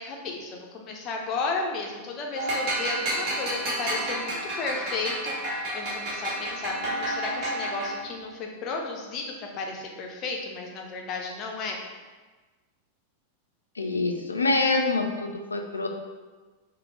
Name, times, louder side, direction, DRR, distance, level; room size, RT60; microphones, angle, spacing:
voice 1, 0.0-11.8, left 3 dB, 35° left, 1 dB, 0.6 m, -34 dB
sound 1, 2.4-8.1, right 1 dB, 40° right, 1.2 m, -30 dB
voice 2, 13.8-15.9, left 3 dB, 75° left, 4 dB, 0.3 m, -25 dB
4.1 x 2.2 x 3.2 m, 1.3 s
figure-of-eight pair, 90°, 0 cm